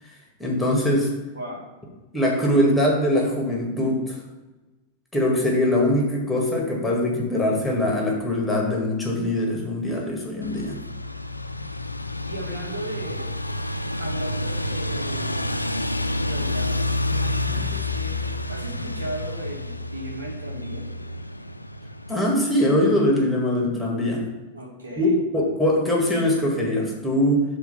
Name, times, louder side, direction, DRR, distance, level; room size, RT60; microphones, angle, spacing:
voice 1, 0.4-1.1 2.1-4.2 5.1-10.8 17.5-17.6 22.1-24.2 25.0-25.1 25.3-27.5, left 1 dB, 5° left, -2 dB, 1.9 m, -22 dB
voice 2, 1.3-1.6 12.3-13.3 14.0-15.4 16.2-20.9 24.5-25.2, right 1 dB, 75° right, -3 dB, 2.3 m, -36 dB
sound 1, 10.4-22.1, left 1 dB, 85° left, 0.4 m, -29 dB
6.9 x 3.7 x 5.6 m, 1.2 s
figure-of-eight pair, 90°, 0 cm